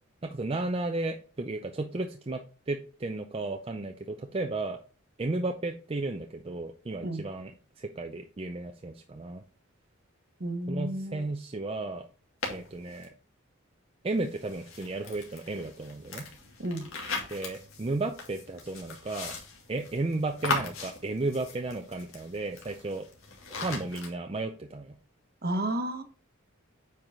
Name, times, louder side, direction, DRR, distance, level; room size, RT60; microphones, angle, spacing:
voice 1, 0.2-4.8 5.2-7.5 7.8-9.4 10.7-12.1 12.5-13.1 14.0-16.3 17.3-19.4 19.7-23.1 23.6-24.9, right 2 dB, 25° right, 5 dB, 0.5 m, -34 dB
voice 2, 10.4-11.2 16.6-16.9 25.4-26.0, right 1 dB, 45° right, 8 dB, 1.0 m, -32 dB
sound 1, 12.4-13.1 14.1-24.1, left 3 dB, 70° left, 2.1 m, -39 dB
8.8 x 4.8 x 3.6 m, 0.40 s
head